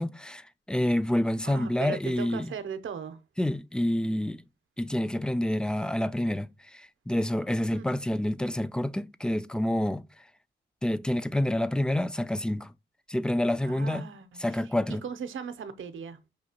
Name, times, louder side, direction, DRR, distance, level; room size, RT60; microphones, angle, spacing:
voice 1, 0.0-2.5 3.4-4.4 4.8-10.0 10.8-12.7 13.1-14.0 14.4-15.0, left 1 dB, 5° left, 0.4 m, -28 dB
voice 2, 1.4-3.2 7.7-7.9 13.6-16.2, right 6 dB, 80° right, 0.7 m, -38 dB
6.2 x 2.8 x 2.7 m
cardioid pair, 60°, 20 cm